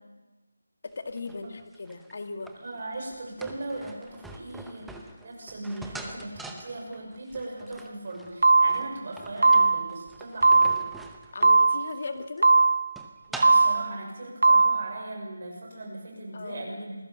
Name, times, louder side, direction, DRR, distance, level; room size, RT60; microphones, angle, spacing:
voice 1, 0.8-2.6 11.3-12.5 16.3-16.8, left 3 dB, 35° left, 7 dB, 2.1 m, -38 dB
sound 1, 1.0-13.8, right 2 dB, ahead, 0.7 m, -45 dB
voice 2, 2.6-10.8 13.3-17.0, right 2 dB, 30° right, 1 dB, 6.1 m, -38 dB
sound 2, 8.4-9.0 9.4-10.0 10.4-11.0 11.4-12.0 12.4-13.0 13.4-14.0 14.4-15.0, right 3 dB, 55° right, 1.1 m, -20 dB
27.0 x 19.5 x 7.0 m, 1.2 s
figure-of-eight pair, 180°, 0 cm